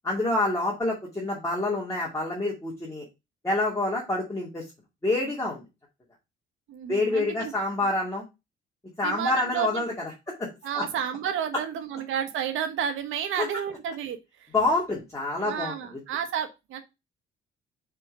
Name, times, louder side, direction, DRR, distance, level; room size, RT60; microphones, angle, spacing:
voice 1, 0.0-3.0 3.4-4.6 5.0-5.6 6.9-8.2 9.0-9.9 10.4-10.5 10.8-10.9 13.4-13.5 14.5-15.7, left 2 dB, 15° left, -4 dB, 2.3 m, -27 dB
voice 2, 6.7-7.5 9.0-9.8 10.6-14.5 15.4-16.8, right 8 dB, 85° right, 7 dB, 1.3 m, -31 dB
5.0 x 4.5 x 5.1 m, 0.24 s
cardioid pair, 90°, 20 cm